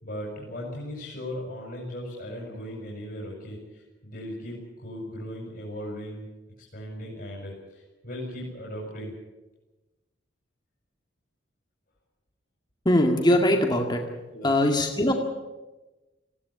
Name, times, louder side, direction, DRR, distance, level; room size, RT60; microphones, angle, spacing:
voice 1, 0.0-6.3 6.6-9.1 14.3-14.5, equal, 50° left, -3 dB, 5.5 m, -37 dB
voice 2, 12.9-14.0 14.4-15.1, left 1 dB, 25° left, 2 dB, 2.1 m, -21 dB
19.0 x 16.5 x 9.6 m, 1.1 s
head